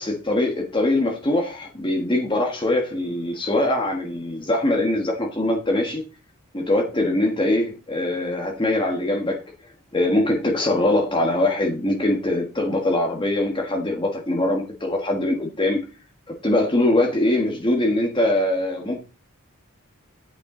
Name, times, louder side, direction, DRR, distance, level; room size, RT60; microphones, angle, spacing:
voice 1, 0.0-6.0 6.5-9.4 9.9-15.9 16.3-19.0, left 1 dB, 20° left, 1.4 m, -22 dB
9.4 x 9.1 x 3.8 m
head